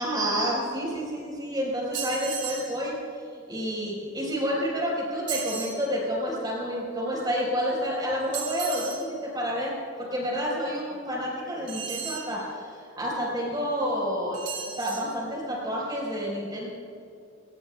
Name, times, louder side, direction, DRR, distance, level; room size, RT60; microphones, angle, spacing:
voice 1, 0.0-2.9 3.3-14.4 14.8-16.7, equal, 20° right, -3 dB, 4.3 m, -29 dB
sound 1, 1.9-2.7 5.3-5.8 8.3-9.0 11.7-12.3 14.3-15.1, right 8 dB, 70° right, 2.7 m, -34 dB
23.5 x 19.0 x 2.3 m, 2.5 s
head